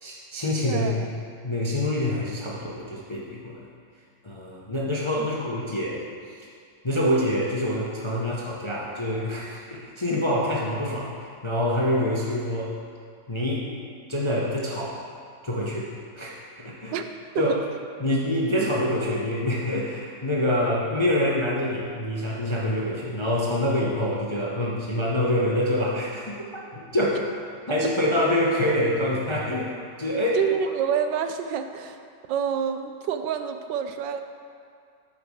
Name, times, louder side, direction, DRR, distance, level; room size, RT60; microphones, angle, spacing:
voice 1, 0.0-1.1 1.4-3.6 4.2-6.0 6.8-11.1 11.4-12.7 13.3-13.6 14.1-15.0 15.4-17.0 17.4-17.6 18.0-26.4 26.7-27.2 27.7-29.7 30.0-30.4, left 1 dB, 30° left, -4 dB, 0.5 m, -26 dB
voice 2, 0.6-1.1 5.2-5.3 16.9-17.1 17.3-17.6 18.6-18.7 27.7-27.8 30.3-32.0 32.3-34.2, right 8 dB, 85° right, 8 dB, 1.3 m, -27 dB
7.7 x 5.3 x 6.9 m, 2.3 s
omnidirectional pair, 1.9 m